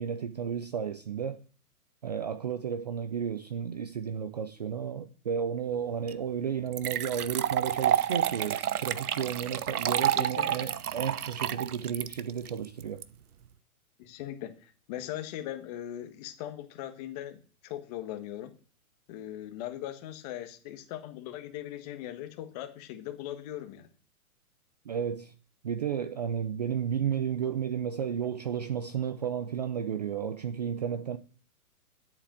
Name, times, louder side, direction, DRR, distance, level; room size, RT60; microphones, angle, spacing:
voice 1, 0.0-1.4 2.0-13.0 24.9-25.3 25.6-31.2, right 8 dB, 30° right, 0.5 m, -33 dB
sound 1, 6.1-6.2 6.7-13.0, right 10 dB, 80° right, 1.0 m, -29 dB
voice 2, 10.2-10.7 14.0-18.6 19.1-23.9, left 12 dB, 25° left, 1.4 m, -40 dB
10.5 x 8.4 x 7.4 m
hypercardioid pair, 155°, 44 cm